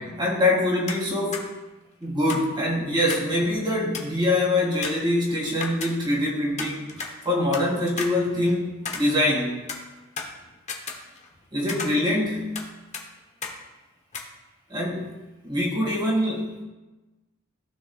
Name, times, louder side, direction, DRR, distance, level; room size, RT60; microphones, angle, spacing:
voice 1, 0.0-1.6 2.0-6.9 7.2-9.7 11.5-12.5 14.7-15.1 15.4-16.6, left 1 dB, 20° right, -4 dB, 2.3 m, -24 dB
sound 1, 0.9-1.1 1.3-1.4 2.3-3.4 3.6-3.7 3.9-4.2 4.8-6.3 6.6-7.6 8.0-9.4 9.7-11.4 11.7-12.7 12.9-13.0 13.4-13.6 14.1-14.2, left 4 dB, 30° left, 1.0 m, -35 dB
14.5 x 6.4 x 2.4 m, 1.2 s
head